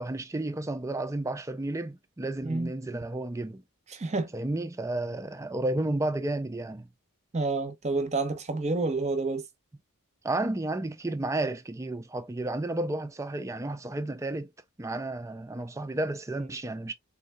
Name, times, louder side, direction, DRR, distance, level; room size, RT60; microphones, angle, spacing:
voice 1, 0.0-3.6 4.3-6.9 10.2-14.5 14.8-16.9, right 2 dB, 15° right, 0.3 m, -32 dB
voice 2, 3.9-4.3 7.3-9.5, right 3 dB, 30° right, 0.7 m, -29 dB
3.9 x 2.6 x 2.2 m
head